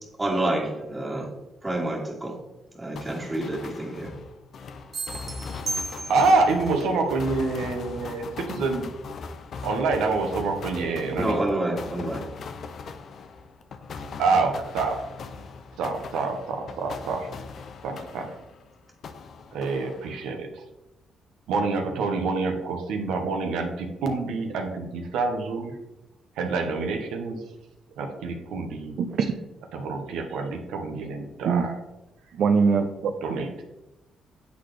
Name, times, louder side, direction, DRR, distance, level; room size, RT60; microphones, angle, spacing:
voice 1, 0.2-1.3 1.6-2.4 2.7-4.1 11.1-12.2, right 1 dB, 20° right, -2 dB, 1.8 m, -28 dB
sound 1, 3.0-18.7 19.0-20.4, left 4 dB, 60° left, 0.5 m, -40 dB
sound 2, 4.9-6.6, right 3 dB, 45° right, 0.8 m, -34 dB
voice 2, 6.1-8.9 9.6-11.4 14.2-15.0 15.8-17.3 17.8-18.3 19.5-20.6 21.5-25.7 26.4-27.4 28.0-28.9 29.7-31.8 33.2-33.6, right 3 dB, 90° right, 4 dB, 0.9 m, -27 dB
voice 3, 29.0-29.3 31.4-31.7 32.4-33.1, right 5 dB, 65° right, 5 dB, 0.5 m, -22 dB
8.3 x 4.1 x 3.2 m, 0.96 s
cardioid pair, 90°, 0 cm